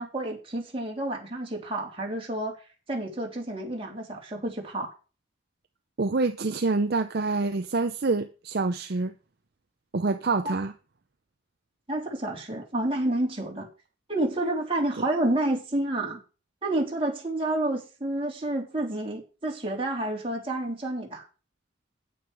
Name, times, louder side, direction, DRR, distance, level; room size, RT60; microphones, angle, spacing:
voice 1, 0.0-2.6 2.9-4.9 10.4-10.6 11.9-13.7 14.1-16.2 16.6-21.2, right 1 dB, 30° right, -1 dB, 3.3 m, -29 dB
voice 2, 6.0-9.1 9.9-10.7, right 3 dB, 55° right, 8 dB, 0.6 m, -26 dB
9.5 x 9.2 x 4.7 m, 0.34 s
head